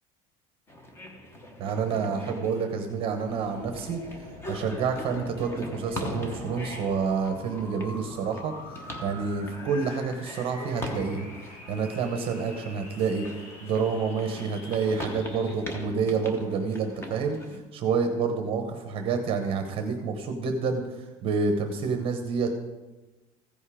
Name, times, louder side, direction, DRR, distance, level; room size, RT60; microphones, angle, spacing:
sound 1, 0.7-17.6, left 1 dB, 15° left, 1.0 m, -41 dB
voice 1, 1.6-4.0 4.5-13.3 13.6-22.5, right 5 dB, 35° right, 5 dB, 0.9 m, -28 dB
sound 2, 3.3-15.6, left 2 dB, 45° left, 2.3 m, -45 dB
15.0 x 5.4 x 4.9 m, 1.1 s
cardioid pair, 180°, 16 cm